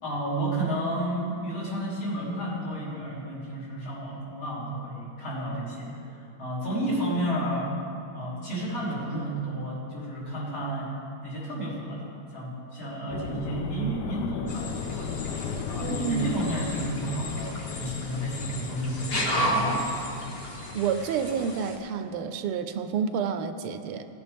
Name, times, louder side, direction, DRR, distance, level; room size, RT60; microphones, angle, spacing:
voice 1, 0.0-7.7 8.1-10.9 11.2-15.3 15.7-20.0, right 1 dB, 65° left, -7 dB, 3.7 m, -32 dB
sound 1, 13.1-21.3, left 6 dB, 85° left, 0.9 m, -36 dB
sound 2, 14.5-21.8, equal, 35° left, 1.0 m, -33 dB
voice 2, 15.8-16.3 20.7-24.1, right 6 dB, 85° right, 9 dB, 1.5 m, -29 dB
17.0 x 9.5 x 3.4 m, 2.5 s
omnidirectional pair, 2.4 m